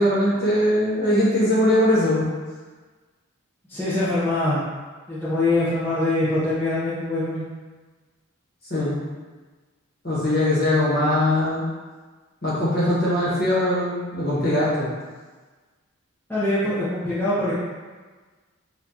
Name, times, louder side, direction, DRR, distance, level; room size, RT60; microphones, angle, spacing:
voice 1, 0.0-2.3 8.7-9.0 10.0-11.6 12.4-14.9, left 1 dB, 45° left, -8 dB, 1.1 m, -21 dB
voice 2, 3.7-4.6 5.1-7.4 16.3-17.6, left 2 dB, 10° left, -12 dB, 0.6 m, -23 dB
2.8 x 2.4 x 3.6 m, 1.3 s
head